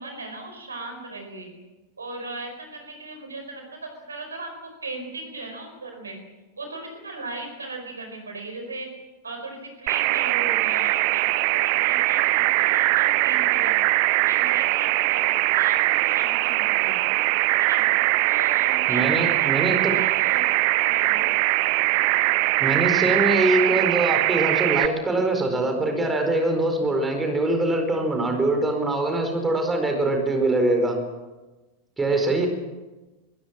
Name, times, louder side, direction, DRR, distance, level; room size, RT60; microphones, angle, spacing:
voice 1, 0.0-1.5 2.0-6.2 6.6-8.9 9.2-13.8 14.2-17.0 17.6-17.8 18.3-20.5 20.9-21.3, right 2 dB, 75° right, 5 dB, 4.7 m, -37 dB
sound 1, 9.9-24.9, right 20 dB, 45° right, 0.6 m, -21 dB
voice 2, 18.9-19.9 22.6-31.0 32.0-32.5, right 2 dB, 10° right, 4 dB, 4.6 m, -23 dB
24.0 x 16.5 x 7.5 m, 1.2 s
figure-of-eight pair, 90°, 0 cm